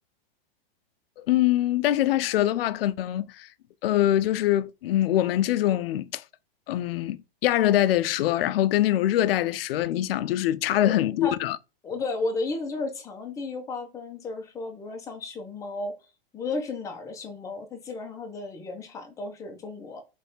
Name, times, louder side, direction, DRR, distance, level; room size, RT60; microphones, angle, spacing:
voice 1, 1.2-3.5 3.8-6.2 6.7-11.6, left 13 dB, 75° left, 0.5 m, -24 dB
voice 2, 11.8-15.9 16.3-20.0, left 3 dB, 10° left, 0.7 m, -33 dB
3.4 x 3.3 x 4.1 m
supercardioid pair, 160°, 30 cm